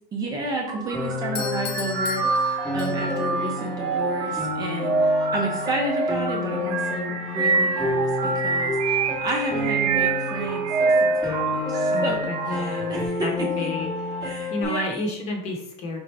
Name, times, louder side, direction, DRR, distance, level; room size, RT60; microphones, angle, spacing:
voice 1, 0.1-10.7 11.0-12.2 12.5-13.3 13.6-13.7 14.2-14.9, right 1 dB, 20° right, 0 dB, 0.5 m, -31 dB
sound 1, 0.7-13.1, right 4 dB, 70° right, 0.6 m, -26 dB
Piano, 0.9-14.6, left 3 dB, 5° left, 0.9 m, -30 dB
Doorbell, 1.4-3.4, left 8 dB, 80° left, 0.7 m, -36 dB
voice 2, 11.9-14.2 14.5-16.0, left 2 dB, 35° left, 2 dB, 0.9 m, -31 dB
4.3 x 3.7 x 3.3 m, 0.79 s
supercardioid pair, 170°, 20 cm